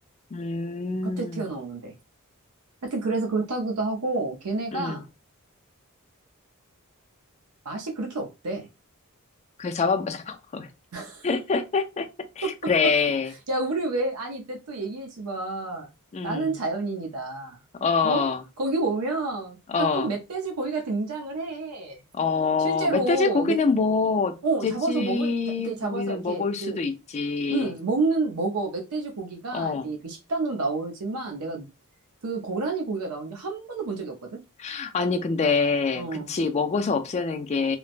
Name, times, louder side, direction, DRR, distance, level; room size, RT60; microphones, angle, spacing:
voice 1, 0.3-1.4 4.7-5.0 9.6-10.7 11.2-12.1 12.4-13.3 16.1-16.5 17.8-18.4 19.7-20.1 22.1-24.4 24.6-27.7 29.5-29.9 34.6-37.8, left 4 dB, 30° left, 0.3 m, -25 dB
voice 2, 1.0-1.9 2.8-5.0 7.6-8.7 10.9-11.3 12.4-12.5 13.5-15.9 16.2-17.6 18.0-18.2 18.6-19.6 19.9-22.0 22.6-23.6 24.4-25.3 25.6-26.8 27.5-31.7 32.2-34.1 36.0-36.3, right 3 dB, 85° right, 0.6 m, -29 dB
3.1 x 2.0 x 2.5 m
head